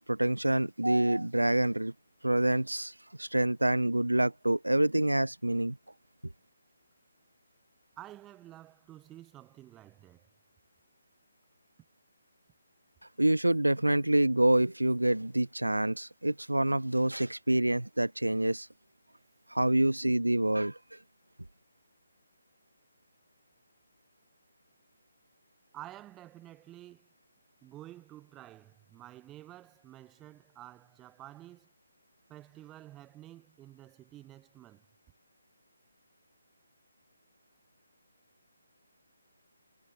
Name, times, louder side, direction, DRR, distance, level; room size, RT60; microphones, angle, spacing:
voice 1, 0.0-1.9 2.2-5.8 13.2-18.7 19.5-21.0, right 1 dB, 90° right, 0.7 m, -27 dB
voice 2, 8.0-10.3 25.7-27.1 27.6-31.7 32.3-34.8, right 14 dB, 15° right, 1.4 m, -50 dB
figure-of-eight pair, 145°, 0 cm